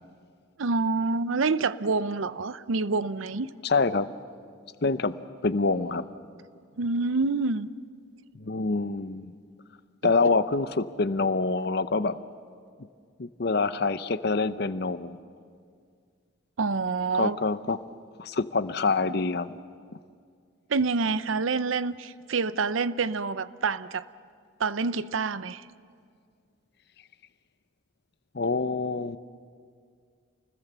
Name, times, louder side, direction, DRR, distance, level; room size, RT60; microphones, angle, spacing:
voice 1, 0.6-3.5 6.8-7.7 16.6-17.4 20.7-24.1 24.6-25.7, right 4 dB, 85° right, 15 dB, 0.7 m, -27 dB
voice 2, 3.6-4.1 4.8-5.2 5.4-6.1 8.4-9.3 10.0-12.2 13.2-15.2 17.2-17.8 18.2-19.6 28.3-29.2, left 3 dB, 55° left, 13 dB, 0.7 m, -26 dB
29.0 x 20.5 x 6.9 m, 2.1 s
head